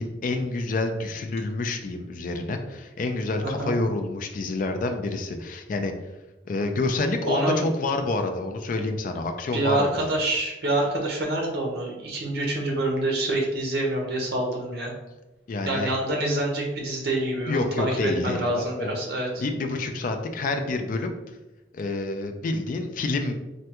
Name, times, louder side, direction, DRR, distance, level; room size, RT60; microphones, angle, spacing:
voice 1, 0.0-5.9 6.5-10.1 15.5-15.9 17.5-19.0 19.4-21.1 21.7-23.3, left 2 dB, 45° left, 6 dB, 0.3 m, -28 dB
voice 2, 3.4-3.7 7.2-7.7 9.5-14.9 15.7-19.4, right 1 dB, 60° right, -1 dB, 0.8 m, -26 dB
3.3 x 2.2 x 2.8 m, 1.0 s
head